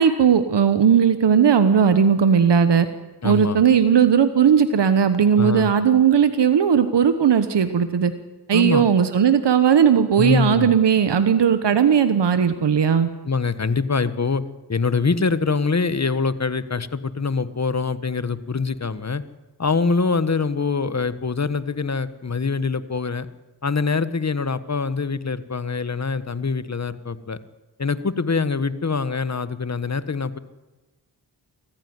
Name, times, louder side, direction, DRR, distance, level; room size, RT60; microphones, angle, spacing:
voice 1, 0.0-2.9 3.2-8.1 8.5-13.1, right 7 dB, 80° right, 10 dB, 1.2 m, -17 dB
voice 2, 3.2-3.6 5.3-5.7 8.5-8.8 10.2-10.7 13.2-14.4 14.7-19.2 19.6-23.3 23.6-27.4 27.8-30.4, left 4 dB, 40° left, 14 dB, 1.4 m, -24 dB
24.0 x 15.0 x 9.6 m, 1.1 s
cardioid pair, 55°, 41 cm